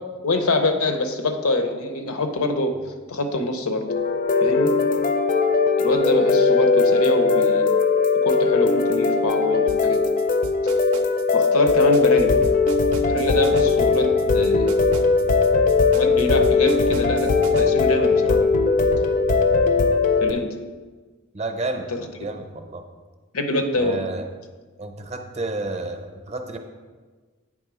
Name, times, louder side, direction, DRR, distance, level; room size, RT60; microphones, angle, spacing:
voice 1, 0.2-2.7 3.1-3.8 4.4-4.7 5.8-7.7 8.2-10.0 11.3-12.4 13.1-14.7 15.9-18.4 20.2-20.5 21.9-22.1 23.3-24.1, left 2 dB, 85° left, 7 dB, 0.7 m, -24 dB
sound 1, 3.9-20.3, left 4 dB, 40° left, 0.4 m, -19 dB
sound 2, 9.7-17.7, right 4 dB, 80° right, 0.5 m, -39 dB
voice 2, 21.3-21.9 22.2-22.8 23.8-24.3 24.8-26.6, right 2 dB, 30° right, 5 dB, 0.6 m, -30 dB
8.6 x 3.5 x 4.7 m, 1.4 s
head